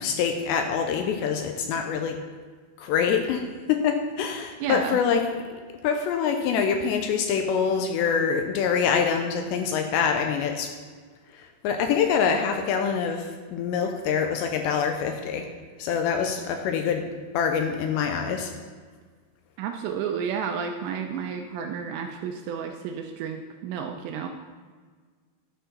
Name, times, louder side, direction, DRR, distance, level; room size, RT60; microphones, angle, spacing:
voice 1, 0.0-2.2 2.8-5.3 5.8-10.7 11.4-15.5 15.8-17.1 17.3-18.5, left 6 dB, 85° left, 5 dB, 2.6 m, -25 dB
voice 2, 4.6-5.0 19.6-24.3, right 7 dB, 80° right, 4 dB, 2.5 m, -31 dB
11.5 x 4.6 x 5.8 m, 1.5 s
omnidirectional pair, 5.4 m